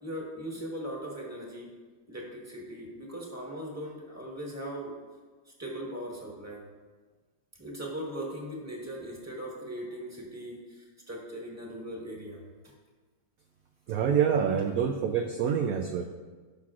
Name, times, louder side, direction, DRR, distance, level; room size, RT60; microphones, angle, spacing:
voice 1, 0.0-1.7 2.1-5.0 5.6-6.7 7.6-12.4, right 1 dB, 10° right, -2 dB, 1.3 m, -39 dB
voice 2, 13.9-16.1, right 7 dB, 70° right, 4 dB, 0.8 m, -26 dB
15.5 x 5.9 x 2.4 m, 1.4 s
omnidirectional pair, 2.0 m